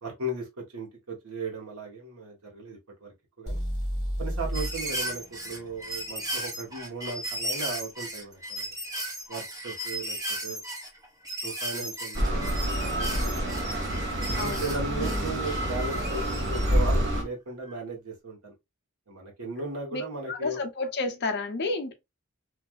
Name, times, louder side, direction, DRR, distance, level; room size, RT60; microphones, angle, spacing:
voice 1, 0.0-3.6 4.2-8.7 9.3-10.6 11.4-13.6 14.3-18.5 19.1-20.6, right 2 dB, 75° right, 1.1 m, -37 dB
sound 1, 3.5-7.4, equal, 30° right, 1.2 m, -34 dB
sound 2, 4.5-17.0 17.6-17.7, right 1 dB, 15° right, 0.6 m, -36 dB
sound 3, 12.1-17.2, equal, 55° right, 0.9 m, -27 dB
voice 2, 14.3-15.4 19.9-20.0 20.3-21.9, left 3 dB, 50° left, 0.6 m, -31 dB
3.2 x 2.4 x 2.3 m
head